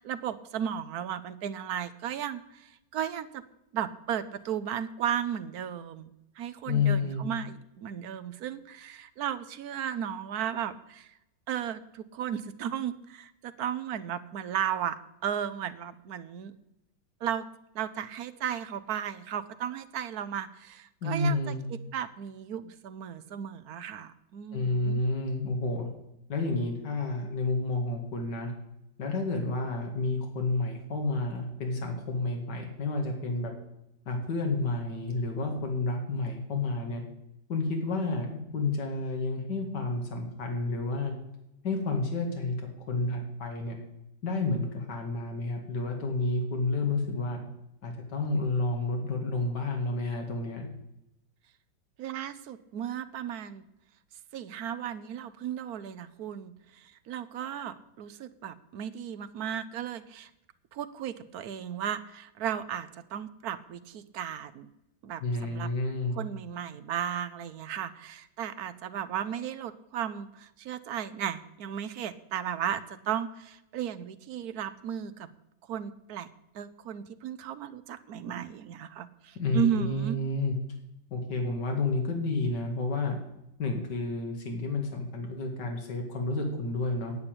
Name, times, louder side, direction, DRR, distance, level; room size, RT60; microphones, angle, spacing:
voice 1, 0.0-3.4 3.7-11.1 11.5-16.5 17.2-17.5 17.7-21.5 21.9-25.0 52.0-53.6 54.3-60.3 60.7-64.7 65.0-65.7 66.1-75.3 75.7-76.3 76.5-80.2, right 9 dB, 65° right, 13 dB, 1.1 m, -35 dB
voice 2, 6.7-7.3 21.0-21.6 24.5-25.9 26.3-28.5 29.0-33.5 34.1-37.0 37.5-41.1 41.6-42.6 42.9-43.8 44.2-47.4 47.8-50.7 65.2-66.2 79.4-80.6 81.1-83.2 83.6-87.1, left 3 dB, 65° left, 2 dB, 2.6 m, -30 dB
9.7 x 8.5 x 8.8 m, 0.87 s
omnidirectional pair, 2.0 m